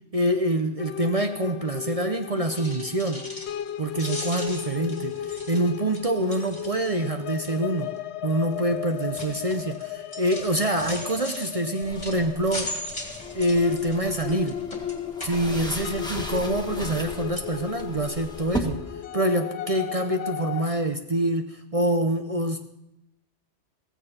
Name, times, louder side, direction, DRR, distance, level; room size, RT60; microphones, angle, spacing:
voice 1, 0.1-3.3 3.8-7.9 8.2-12.8 13.3-14.6 15.2-18.8 19.1-22.7, right 1 dB, 35° right, 6 dB, 0.8 m, -26 dB
sound 1, 0.8-20.7, left 10 dB, 70° left, 0.9 m, -35 dB
sound 2, 2.4-3.7 3.9-7.1 7.4-7.8 8.5-16.0 16.4-17.1 17.3-17.5 18.0-18.1 18.4-18.5, left 1 dB, 30° left, 2.6 m, -39 dB
sound 3, 11.8-18.6, equal, 5° left, 1.3 m, -38 dB
16.0 x 15.5 x 4.3 m, 0.85 s
omnidirectional pair, 1.2 m